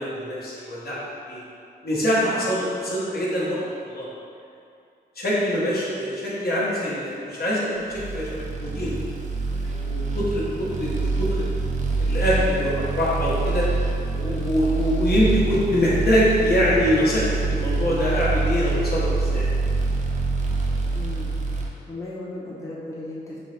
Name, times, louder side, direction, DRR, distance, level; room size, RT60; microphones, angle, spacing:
voice 1, 0.0-1.4 1.8-4.1 5.2-9.0 9.5-11.5 12.0-13.7 14.1-17.2 17.5-19.5, equal, 60° left, -7 dB, 1.0 m, -24 dB
sound 1, 7.9-21.7, right 3 dB, 45° right, 0.5 m, -25 dB
voice 2, 20.9-23.4, left 2 dB, 15° left, -7 dB, 0.8 m, -37 dB
4.0 x 2.8 x 3.2 m, 2.5 s
cardioid pair, 80°, 18 cm